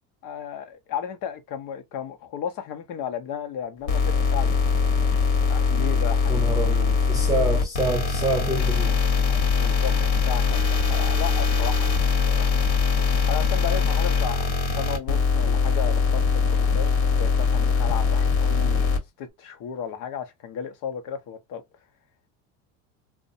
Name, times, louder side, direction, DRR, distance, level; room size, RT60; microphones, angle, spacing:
voice 1, 0.2-4.8 5.5-6.4 9.3-12.5 13.1-21.6, left 8 dB, 50° left, 0.7 m, -34 dB
sound 1, 3.9-19.0, left 5 dB, 70° left, 1.1 m, -22 dB
voice 2, 6.3-9.0, right 2 dB, 10° right, 0.3 m, -27 dB
2.5 x 2.2 x 2.5 m
supercardioid pair, 100°, 40 cm